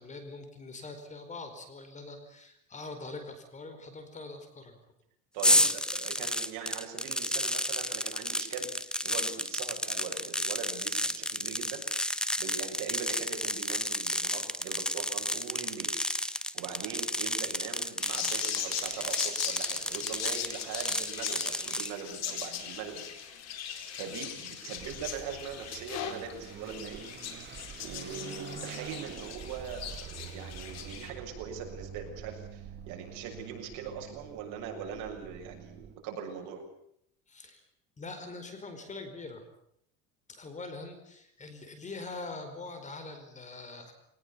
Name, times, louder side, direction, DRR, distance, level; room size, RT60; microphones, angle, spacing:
voice 1, 0.0-4.8 5.5-5.7 37.3-37.6 38.0-39.4 40.3-43.9, left 3 dB, 20° left, 8 dB, 4.7 m, -43 dB
voice 2, 5.3-11.8 12.1-23.1 23.8-27.1 27.8-36.6, right 7 dB, 65° right, 3 dB, 6.8 m, -41 dB
sound 1, 5.4-21.9, left 1 dB, ahead, 1.1 m, -31 dB
sound 2, 18.0-31.1, left 9 dB, 50° left, 4.4 m, -39 dB
Car passing by / Accelerating revving vroom, 24.7-36.0, right 8 dB, 35° right, 1.7 m, -47 dB
23.0 x 19.5 x 8.5 m, 0.71 s
cardioid pair, 135°, 33 cm